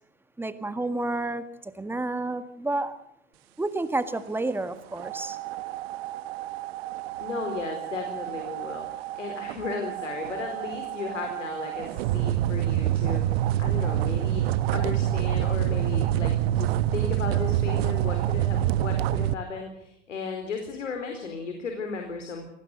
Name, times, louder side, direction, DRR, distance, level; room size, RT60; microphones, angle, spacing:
voice 1, 0.4-3.0 3.6-5.4, right 2 dB, 5° right, 11 dB, 1.7 m, -30 dB
sound 1, 5.0-19.3, right 12 dB, 55° right, 1.2 m, -27 dB
voice 2, 7.2-22.5, left 5 dB, 80° left, 4 dB, 4.4 m, -35 dB
28.0 x 19.0 x 6.7 m, 0.72 s
hypercardioid pair, 100°, 37 cm